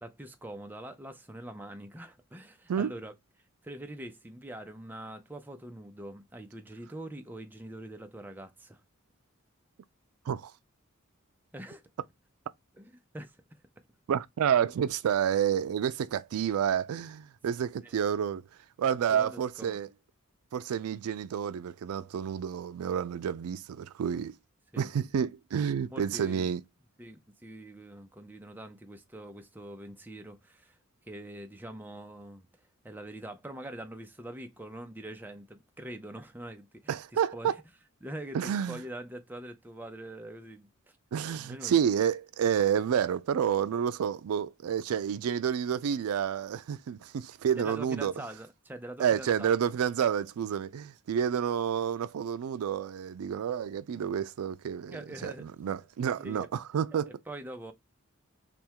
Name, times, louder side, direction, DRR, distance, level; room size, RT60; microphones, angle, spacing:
voice 1, 0.0-3.1 3.6-8.8 11.5-11.9 12.7-13.6 17.8-18.0 19.1-19.8 24.7-24.9 25.8-26.5 27.0-30.8 31.0-32.5 32.8-36.9 37.3-37.6 38.0-40.7 41.3-41.8 47.6-49.6 54.9-55.5 56.2-56.5 56.9-57.7, right 1 dB, 10° right, 0.5 m, -44 dB
voice 2, 14.1-18.4 18.8-19.9 20.5-24.3 24.8-26.6 36.9-37.6 38.3-38.8 41.1-48.1 49.0-57.1, right 8 dB, 85° right, 0.4 m, -29 dB
3.4 x 2.2 x 4.4 m
head